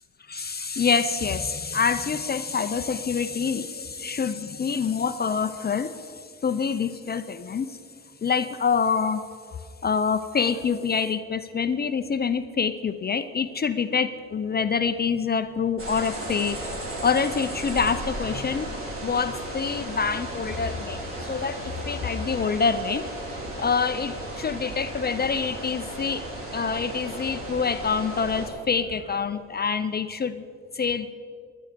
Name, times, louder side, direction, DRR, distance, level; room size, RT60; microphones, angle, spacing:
voice 1, 0.3-7.8 8.2-16.6 17.0-18.7 19.0-23.1 23.6-26.2 26.5-30.4 30.7-31.1, left 5 dB, 30° left, 11 dB, 0.6 m, -26 dB
sound 1, 15.8-28.5, right 1 dB, 45° right, 4.0 m, -35 dB
17.0 x 11.0 x 5.2 m, 2.2 s
cardioid pair, 90°, 30 cm